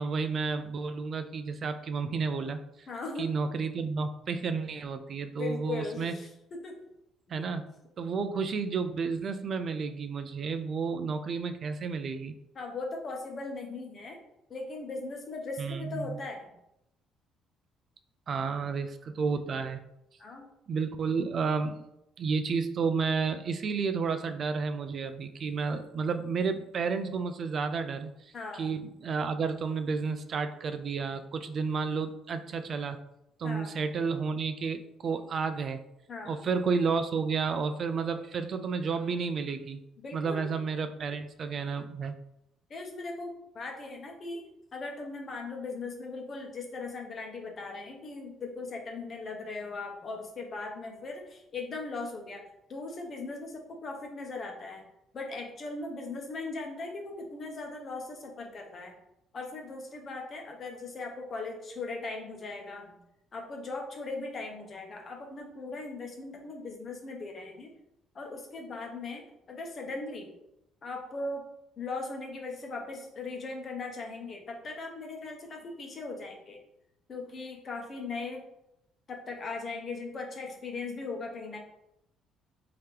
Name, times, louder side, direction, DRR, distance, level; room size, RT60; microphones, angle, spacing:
voice 1, 0.0-2.9 3.2-6.2 7.3-7.7 8.0-12.3 15.6-16.2 18.3-19.8 20.7-21.8 22.2-33.0 33.4-35.8 36.3-39.8 40.1-42.1, right 5 dB, 50° right, 9 dB, 0.3 m, -31 dB
voice 2, 2.9-3.3 5.4-6.3 6.6-6.7 12.5-14.2 14.5-16.5 20.2-20.5 28.3-28.7 33.4-33.7 36.1-36.4 40.0-40.5 42.7-52.4 52.7-54.8 55.1-58.9 59.3-63.0 63.3-67.7 68.1-70.3 70.8-71.4 71.8-76.6 77.1-78.4 79.1-81.6, left 3 dB, 45° left, 2 dB, 0.9 m, -39 dB
3.3 x 2.8 x 3.3 m, 0.83 s
supercardioid pair, 70°, 0 cm